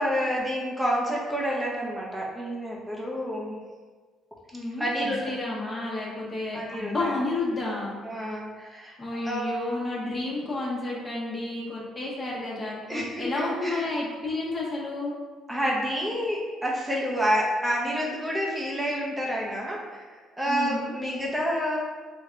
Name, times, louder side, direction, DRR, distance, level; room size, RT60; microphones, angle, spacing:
voice 1, 0.0-3.6 4.8-5.3 6.5-7.1 8.0-9.0 9.2-9.5 12.9-13.8 15.5-20.0 20.4-21.8, equal, 5° right, -4 dB, 0.6 m, -28 dB
voice 2, 4.5-8.0 9.0-15.1 20.5-20.9, left 2 dB, 20° left, -5 dB, 0.9 m, -31 dB
3.3 x 2.2 x 3.7 m, 1.4 s
cardioid pair, 125°, 0 cm